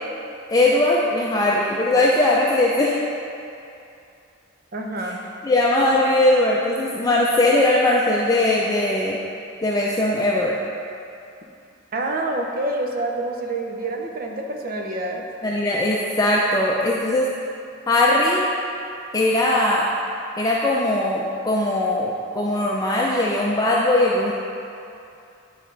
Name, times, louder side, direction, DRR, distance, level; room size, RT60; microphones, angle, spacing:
voice 1, 0.5-3.0 5.4-9.2 9.6-10.6 15.4-17.3 17.9-18.5 19.1-19.9 20.4-24.3, left 1 dB, 20° left, -4 dB, 0.5 m, -20 dB
voice 2, 4.7-5.2 11.9-15.2, right 2 dB, 50° right, 1 dB, 0.8 m, -27 dB
9.7 x 5.1 x 3.9 m, 2.6 s
head